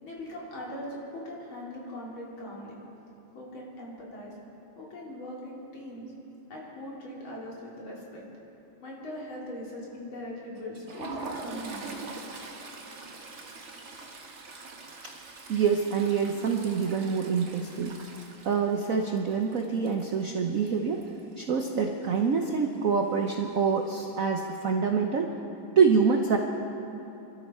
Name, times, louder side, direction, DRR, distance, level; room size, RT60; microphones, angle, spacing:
voice 1, 0.0-2.8 3.3-4.3 4.8-6.1 6.5-8.2 8.8-12.1, left 1 dB, 65° left, -4 dB, 3.6 m, -40 dB
Toilet flush, 10.6-21.3 21.6-21.8 22.1-22.3 23.3-23.8, right 3 dB, 40° right, 1.3 m, -43 dB
voice 2, 15.5-18.0 18.4-21.1 21.4-25.3 25.8-26.4, right 6 dB, 65° right, 3 dB, 0.8 m, -26 dB
25.5 x 13.0 x 4.3 m, 3.0 s
omnidirectional pair, 2.4 m